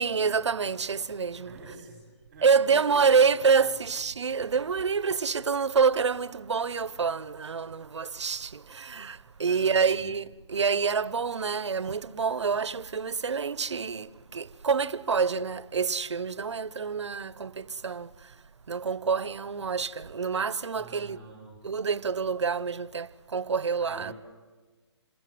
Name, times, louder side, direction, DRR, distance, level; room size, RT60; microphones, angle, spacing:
voice 1, 0.0-1.6 2.4-18.1 18.7-21.2 21.6-24.1, right 5 dB, 75° right, 1.0 m, -27 dB
voice 2, 1.4-2.0 2.3-3.7 9.4-10.0 20.7-21.6 23.8-24.1, right 2 dB, 20° right, 5.2 m, -47 dB
27.5 x 21.5 x 9.5 m
hypercardioid pair, 175°, 15 cm